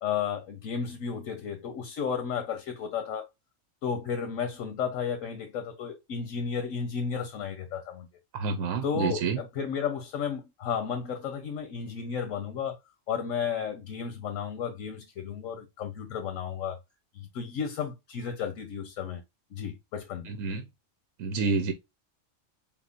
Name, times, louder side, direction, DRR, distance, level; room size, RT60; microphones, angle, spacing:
voice 1, 0.0-3.3 3.8-8.1 8.8-12.8 13.1-16.8 17.1-19.2 19.5-20.3, left 7 dB, 85° left, 1.2 m, -33 dB
voice 2, 8.3-9.4 20.3-20.6 21.2-21.7, right 4 dB, 80° right, 1.1 m, -28 dB
4.4 x 3.6 x 2.4 m
omnidirectional pair, 1.3 m